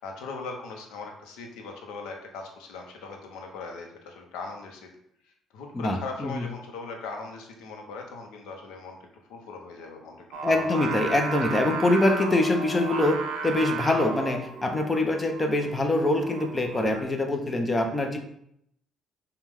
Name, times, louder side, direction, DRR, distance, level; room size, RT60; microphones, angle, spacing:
voice 1, 0.0-4.9 5.5-9.0 9.3-10.8, left 4 dB, 90° left, 2 dB, 0.7 m, -39 dB
voice 2, 5.7-6.5 10.4-18.2, left 2 dB, 25° left, 4 dB, 0.7 m, -24 dB
Singing, 10.3-17.0, right 4 dB, 80° right, 0.5 m, -34 dB
5.2 x 2.3 x 3.5 m, 0.73 s
cardioid pair, 80°, 0 cm